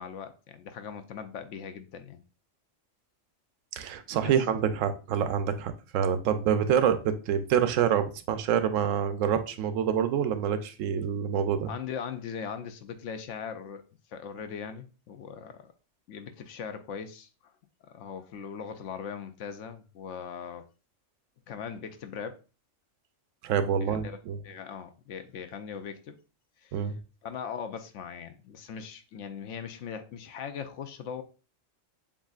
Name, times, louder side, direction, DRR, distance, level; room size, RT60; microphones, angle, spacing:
voice 1, 0.0-2.2 4.2-4.4 11.7-13.8 14.1-15.7 16.1-17.5 17.8-20.7 21.5-22.4 23.8-24.2 24.4-26.2 26.6-26.9 27.2-31.2, left 7 dB, 75° left, 0.9 m, -40 dB
voice 2, 3.7-11.7 23.4-24.4 26.7-27.0, right 8 dB, 80° right, 0.9 m, -27 dB
7.1 x 2.6 x 2.4 m
omnidirectional pair, 1.3 m